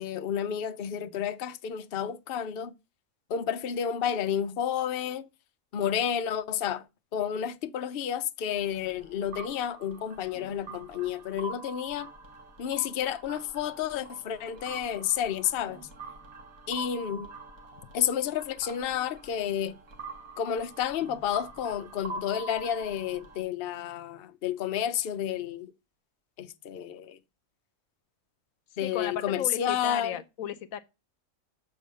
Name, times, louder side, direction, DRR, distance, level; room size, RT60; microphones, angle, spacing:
voice 1, 0.0-2.7 3.3-5.3 5.7-6.8 7.1-12.1 12.6-15.8 16.7-17.3 17.9-19.8 20.4-25.7 26.4-27.2 28.8-30.2, left 9 dB, 55° left, 0.8 m, -31 dB
sound 1, 8.5-23.4, right 2 dB, 90° right, 1.9 m, -45 dB
voice 2, 28.8-30.8, left 9 dB, 80° left, 1.1 m, -35 dB
7.1 x 4.8 x 6.4 m
omnidirectional pair, 1.4 m